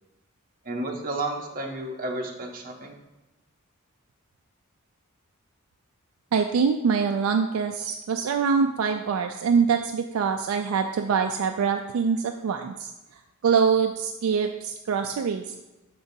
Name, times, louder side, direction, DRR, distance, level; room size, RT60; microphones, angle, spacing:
voice 1, 0.6-3.0, right 2 dB, 40° right, 0 dB, 0.9 m, -32 dB
voice 2, 6.3-12.9 13.4-15.5, right 6 dB, 70° right, 5 dB, 0.3 m, -24 dB
6.8 x 5.1 x 2.7 m, 1.0 s
head